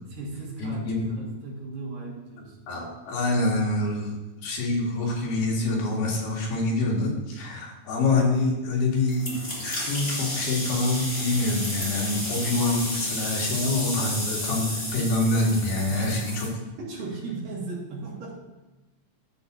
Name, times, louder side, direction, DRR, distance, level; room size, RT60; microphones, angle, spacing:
voice 1, 0.1-2.9 15.9-16.4 16.8-18.3, right 3 dB, 60° right, -3 dB, 3.4 m, -36 dB
voice 2, 0.6-1.1 2.7-4.2 4.4-16.5, left 2 dB, 80° left, -3 dB, 4.0 m, -26 dB
sound 1, 9.1-16.5, left 1 dB, 15° left, 2.4 m, -32 dB
11.5 x 8.1 x 2.8 m, 1.1 s
omnidirectional pair, 4.5 m